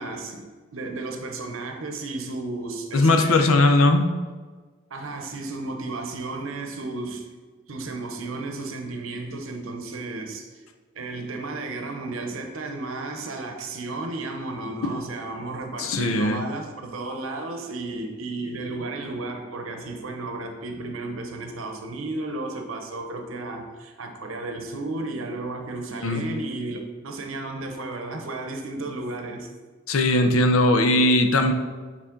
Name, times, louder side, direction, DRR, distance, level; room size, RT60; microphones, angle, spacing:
voice 1, 0.0-3.6 4.9-7.3 7.7-10.5 10.9-29.5, right 2 dB, 70° right, 4 dB, 0.8 m, -33 dB
voice 2, 2.9-4.1 14.8-14.9 15.8-16.4 26.0-26.3 29.9-31.5, left 2 dB, 85° left, 6 dB, 0.6 m, -19 dB
8.6 x 4.1 x 3.8 m, 1.4 s
head